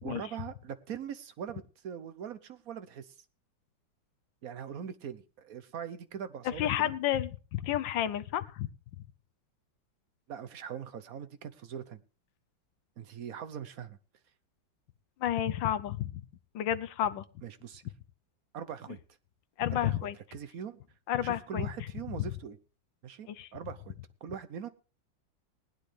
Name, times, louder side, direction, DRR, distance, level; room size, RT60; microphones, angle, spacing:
voice 1, 0.0-3.1 4.4-6.9 10.3-12.0 13.0-14.0 17.4-17.8 18.5-19.0 19.7-20.8 21.2-22.6 23.0-24.7, right 8 dB, 55° right, 12 dB, 1.1 m, -42 dB
voice 2, 6.4-8.7 15.2-16.2 16.5-17.2 19.6-20.1 21.1-21.7 22.2-22.3 23.3-23.5, left 11 dB, 75° left, 14 dB, 1.5 m, -31 dB
19.5 x 9.8 x 3.4 m, 0.35 s
omnidirectional pair, 2.2 m